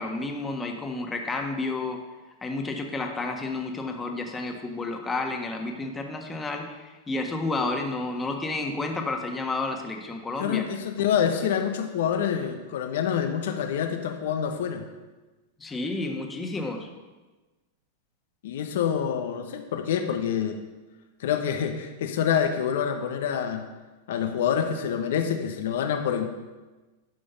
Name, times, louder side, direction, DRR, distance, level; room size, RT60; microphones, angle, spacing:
voice 1, 0.0-2.0 2.4-6.8 7.1-10.7 15.6-16.9, left 3 dB, 15° left, 3 dB, 1.5 m, -31 dB
voice 2, 10.4-14.8 18.4-20.6 21.2-23.6 24.1-26.3, left 8 dB, 70° left, 6 dB, 1.1 m, -27 dB
11.0 x 5.3 x 6.9 m, 1.2 s
hypercardioid pair, 115°, 0 cm